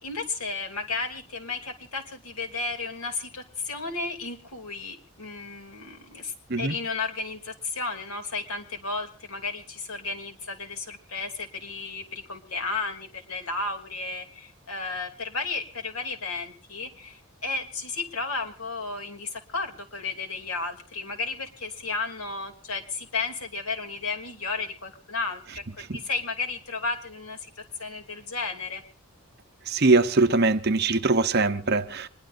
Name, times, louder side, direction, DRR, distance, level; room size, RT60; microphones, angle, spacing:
voice 1, 0.0-28.8, left 3 dB, 85° left, 2.8 m, -33 dB
voice 2, 29.7-32.1, right 3 dB, 45° right, 0.8 m, -22 dB
26.0 x 21.0 x 2.6 m
head